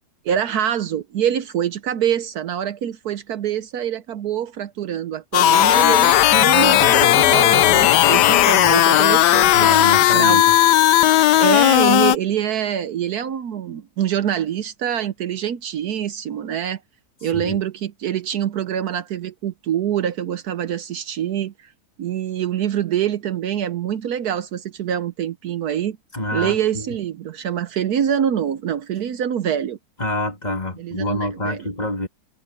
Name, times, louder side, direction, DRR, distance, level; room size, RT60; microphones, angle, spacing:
voice 1, 0.2-10.4 11.4-16.8 17.2-21.7 22.0-26.0 26.3-29.8 30.8-31.7, right 9 dB, 70° right, 1.3 m, -25 dB
sound 1, 5.3-12.2, left 12 dB, 85° left, 1.3 m, -15 dB
voice 2, 8.3-8.8 9.5-10.5 17.3-17.6 26.1-26.9 30.0-32.1, left 1 dB, 25° left, 3.4 m, -27 dB
omnidirectional pair, 1.8 m